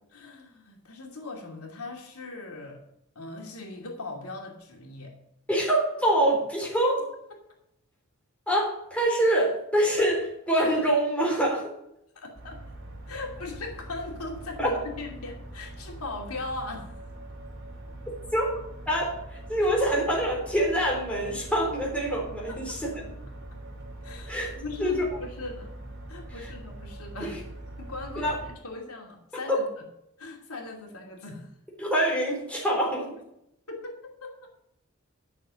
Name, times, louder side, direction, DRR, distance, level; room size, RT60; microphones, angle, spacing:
voice 1, 0.1-2.8 3.1-5.1 7.3-7.4 12.1-12.7 13.1-16.9 19.6-19.7 22.5-22.8 24.0-25.7 26.1-27.4 27.8-29.7 30.2-31.5 33.7-34.5, left 2 dB, 85° left, 1 dB, 2.6 m, -39 dB
voice 2, 5.5-7.0 8.5-11.7 14.6-14.7 18.3-18.5 18.9-19.1 19.5-22.9 24.3-24.5 24.8-25.0 27.2-27.3 28.2-28.4 29.5-29.6 31.8-33.1, right 1 dB, 5° left, -3 dB, 3.8 m, -25 dB
sound 1, 12.3-28.5, right 1 dB, 55° right, 2.9 m, -42 dB
12.0 x 6.7 x 6.3 m, 0.79 s
head